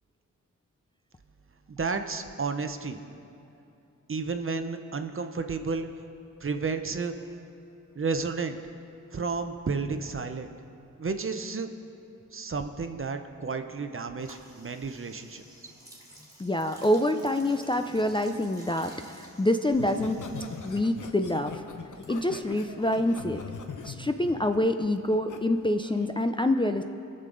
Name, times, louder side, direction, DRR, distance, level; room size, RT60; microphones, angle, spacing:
voice 1, 1.7-3.0 4.1-5.9 6.4-7.1 8.0-8.6 9.1-10.5 11.0-11.7 12.3-15.4, right 4 dB, 40° right, 7 dB, 0.7 m, -32 dB
sound 1, 14.2-21.1 21.3-23.7, equal, 10° right, 2.0 m, -53 dB
voice 2, 16.4-20.2 20.6-21.5 22.1-23.4 23.9-26.8, left 1 dB, 15° left, 6 dB, 0.4 m, -26 dB
Laughter, 19.7-25.4 25.8-26.1, left 5 dB, 65° left, 0.9 m, -41 dB
19.5 x 6.6 x 3.9 m, 2.8 s
cardioid pair, 65°, 32 cm